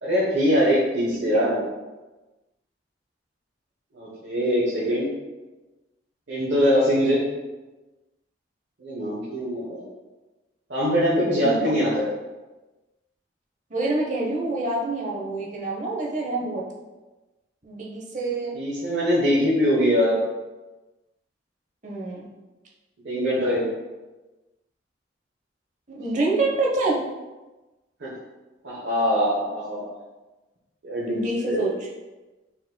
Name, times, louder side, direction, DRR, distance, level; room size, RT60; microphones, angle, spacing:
voice 1, 0.0-1.6 3.9-5.1 6.3-7.2 8.8-9.8 10.7-12.1 18.5-20.2 23.0-23.7 28.0-28.1 28.6-29.8 30.8-31.7, equal, 70° right, -9 dB, 1.1 m, -22 dB
voice 2, 1.1-1.6 11.3-11.9 13.7-16.6 17.6-18.5 21.8-22.2 25.9-27.0 31.0-31.9, right 2 dB, 40° right, -3 dB, 0.8 m, -27 dB
4.4 x 4.2 x 2.3 m, 1.1 s
head